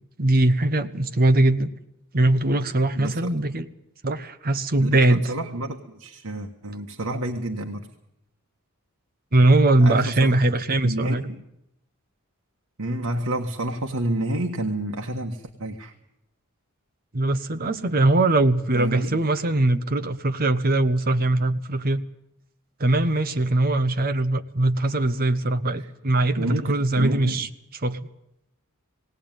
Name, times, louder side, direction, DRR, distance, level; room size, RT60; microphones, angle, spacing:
voice 1, 0.2-1.7 2.1-3.7 4.0-5.3 9.3-11.2 17.1-22.0 22.8-27.5 27.8-28.1, right 2 dB, 40° right, 9 dB, 1.0 m, -21 dB
voice 2, 2.9-3.3 4.8-7.9 9.8-10.4 10.8-11.4 12.8-15.9 18.7-19.2 25.8-25.9 26.3-27.5, right 1 dB, 85° right, 3 dB, 1.5 m, -29 dB
18.5 x 18.0 x 9.1 m, 0.81 s
head